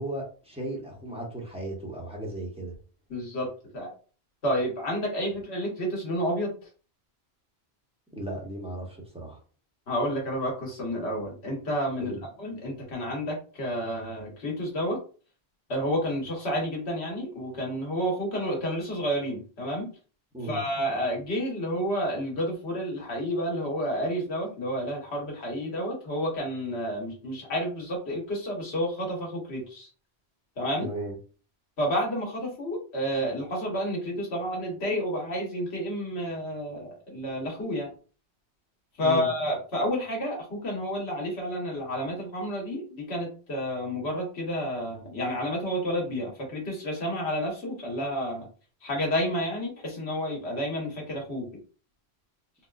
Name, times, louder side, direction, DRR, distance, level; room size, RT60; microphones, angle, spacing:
voice 1, 0.0-2.7 8.1-9.4 12.0-12.2 20.3-20.6 30.8-31.2 39.0-39.3, right 1 dB, 5° right, -2 dB, 1.0 m, -35 dB
voice 2, 3.1-3.5 3.7-3.9 4.4-6.5 9.9-15.0 15.7-19.9 20.4-29.9 30.6-30.9 31.8-37.9 39.0-48.5 48.8-51.5, equal, 75° left, -1 dB, 1.5 m, -30 dB
4.2 x 2.3 x 2.4 m, 0.38 s
omnidirectional pair, 1.1 m